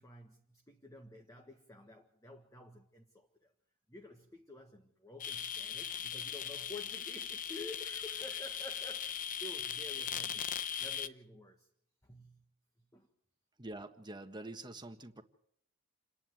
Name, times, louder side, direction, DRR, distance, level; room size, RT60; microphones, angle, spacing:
voice 1, 0.0-3.5 3.9-10.5 10.8-11.7 12.0-12.5 12.8-13.1, left 2 dB, 15° left, 1.6 m, -51 dB
sound 1, 5.2-11.1, left 8 dB, 35° left, 0.8 m, -39 dB
voice 2, 13.6-15.2, right 2 dB, 20° right, 1.6 m, -46 dB
28.5 x 11.0 x 9.4 m
head